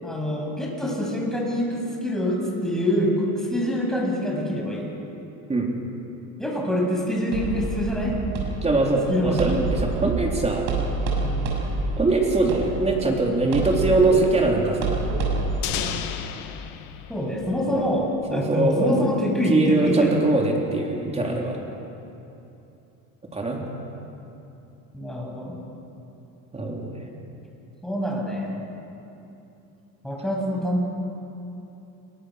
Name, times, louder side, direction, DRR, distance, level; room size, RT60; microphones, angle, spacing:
voice 1, 0.0-4.9 6.4-8.1 9.1-9.6 11.2-11.5 17.1-20.1 21.1-21.5 24.9-25.6 27.8-28.6 30.0-30.9, equal, ahead, -2 dB, 7.4 m, -26 dB
sound 1, 7.3-15.6, right 3 dB, 80° right, 6.6 m, -28 dB
voice 2, 8.6-10.6 12.0-15.0 17.7-17.9 18.3-19.1 19.5-21.6 23.3-23.6 26.5-27.0, right 2 dB, 15° right, -1 dB, 3.8 m, -22 dB
sound 2, 15.6-18.4, left 10 dB, 65° left, 2.0 m, -33 dB
28.0 x 23.5 x 6.6 m, 2.9 s
cardioid pair, 125°, 37 cm